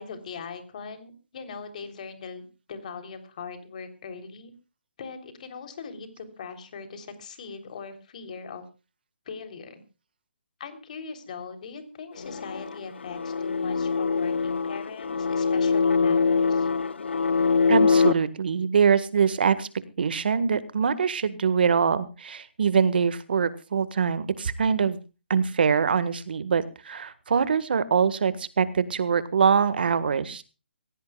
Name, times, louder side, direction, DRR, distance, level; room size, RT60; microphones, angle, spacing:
voice 1, 0.0-4.5 5.0-8.6 9.3-9.8 10.6-16.7, left 5 dB, 45° left, 8 dB, 3.6 m, -40 dB
sound 1, 12.2-18.1, left 5 dB, 80° left, 0.8 m, -23 dB
voice 2, 17.7-19.7 20.0-25.0 25.3-30.4, right 6 dB, 60° right, 15 dB, 1.7 m, -23 dB
24.0 x 16.5 x 2.4 m, 0.32 s
hypercardioid pair, 160°, 6 cm